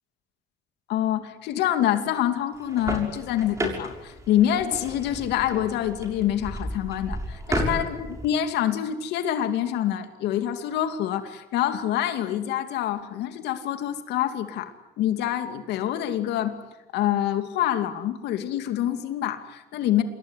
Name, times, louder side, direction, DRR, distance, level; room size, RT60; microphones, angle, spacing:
voice 1, 0.9-14.7 15.0-16.6 16.9-20.0, left 11 dB, 85° left, 8 dB, 2.6 m, -26 dB
sound 1, 2.5-8.3, right 1 dB, 15° right, 6.9 m, -33 dB
27.5 x 21.5 x 9.9 m, 1.0 s
cardioid pair, 110°, 17 cm